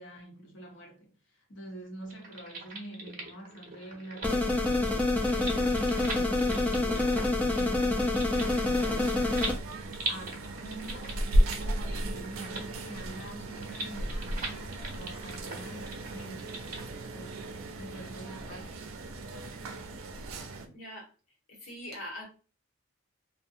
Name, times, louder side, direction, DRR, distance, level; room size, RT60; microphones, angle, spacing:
voice 1, 0.0-5.0 5.3-11.3 11.9-17.5 17.8-18.8, right 1 dB, 60° left, 0.9 m, -46 dB
sound 1, 2.0-16.8, right 3 dB, 40° right, 0.7 m, -42 dB
sound 2, 4.2-9.5, left 2 dB, 5° left, 0.4 m, -27 dB
sound 3, 8.3-20.7, right 1 dB, 80° right, 0.4 m, -34 dB
voice 2, 20.6-21.1 21.5-22.2, left 1 dB, 85° left, 1.1 m, -42 dB
2.7 x 2.2 x 2.5 m
head